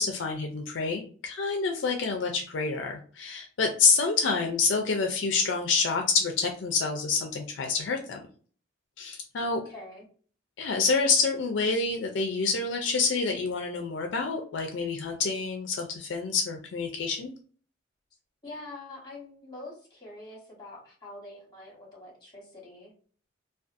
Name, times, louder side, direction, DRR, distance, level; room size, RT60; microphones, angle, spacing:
voice 1, 0.0-8.2 9.0-9.6 10.6-17.3, left 4 dB, 70° left, 3 dB, 0.4 m, -27 dB
voice 2, 9.4-10.1 18.4-22.9, left 2 dB, 20° left, -2 dB, 1.0 m, -45 dB
2.4 x 2.3 x 2.5 m, 0.44 s
head